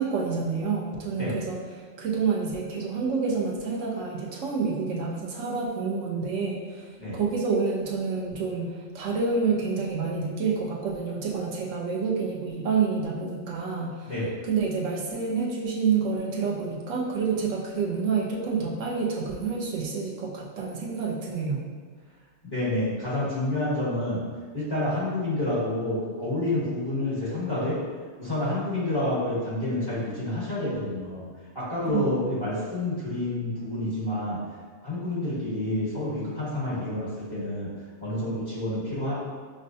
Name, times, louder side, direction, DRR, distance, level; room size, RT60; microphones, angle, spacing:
voice 1, 0.0-1.6 2.0-14.1 14.5-21.6 31.9-32.3, right 5 dB, 80° right, -3 dB, 1.0 m, -28 dB
voice 2, 22.4-24.2 24.5-27.8 28.2-31.2 31.5-34.4 34.8-37.7 38.0-39.2, left 1 dB, 20° left, -10 dB, 1.4 m, -28 dB
6.2 x 2.2 x 2.6 m, 1.5 s
omnidirectional pair, 1.3 m